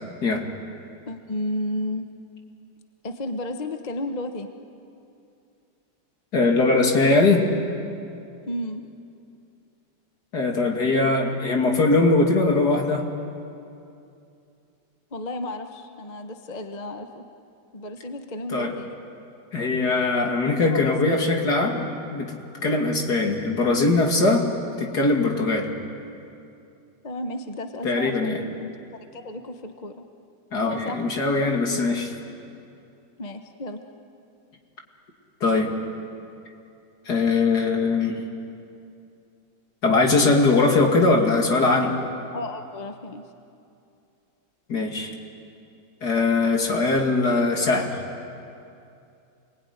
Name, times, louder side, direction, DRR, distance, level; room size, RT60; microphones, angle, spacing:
voice 1, 1.1-2.1 3.0-4.5 8.5-8.9 15.1-17.2 17.7-19.0 20.6-21.2 27.0-30.0 30.7-31.0 33.2-33.8 42.3-43.3, left 1 dB, 30° left, 6 dB, 1.0 m, -33 dB
voice 2, 6.3-7.5 10.3-13.0 18.5-18.7 19.5-22.4 22.6-24.5 24.8-25.7 27.8-28.4 30.5-32.1 35.4-35.7 37.1-38.2 39.8-41.9 44.7-45.1 46.0-48.0, left 3 dB, 55° left, 2 dB, 3.0 m, -21 dB
28.0 x 20.5 x 9.7 m, 2.6 s
omnidirectional pair, 2.1 m